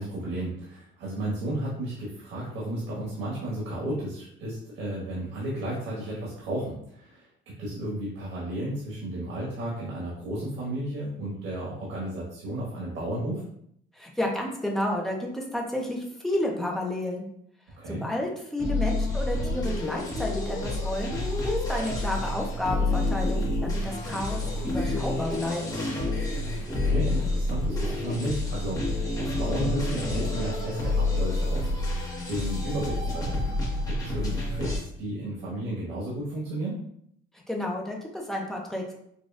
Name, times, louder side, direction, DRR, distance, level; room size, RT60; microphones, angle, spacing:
voice 1, 0.0-13.4 17.8-18.0 26.6-31.7 32.3-33.6 33.9-36.8, right 1 dB, 85° right, -6 dB, 1.5 m, -33 dB
voice 2, 13.9-17.2 17.9-25.6 37.5-38.8, left 1 dB, ahead, -1 dB, 0.6 m, -31 dB
sound 1, 18.6-34.8, left 2 dB, 20° left, 1.0 m, -28 dB
6.2 x 2.4 x 2.4 m, 0.70 s
cardioid pair, 170°, 21 cm